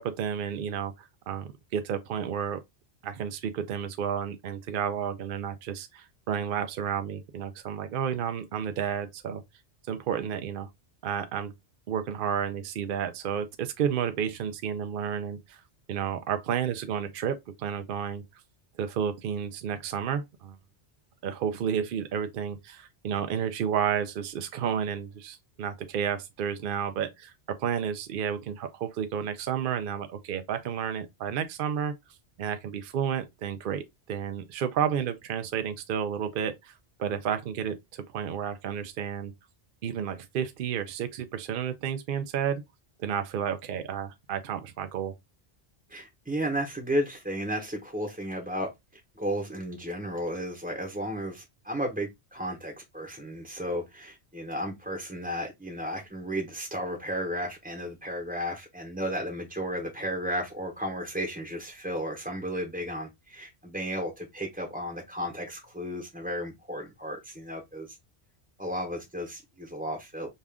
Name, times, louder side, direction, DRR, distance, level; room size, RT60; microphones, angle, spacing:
voice 1, 0.0-2.6 3.0-9.4 9.9-10.7 11.0-11.5 11.9-15.6 15.9-18.2 18.8-20.6 21.2-31.9 32.4-36.7 37.0-39.3 39.8-42.6 43.0-45.1, right 8 dB, 60° right, 0.7 m, -31 dB
voice 2, 45.9-68.0 68.6-70.3, equal, 10° right, 0.8 m, -33 dB
5.4 x 2.4 x 3.4 m
omnidirectional pair, 1.1 m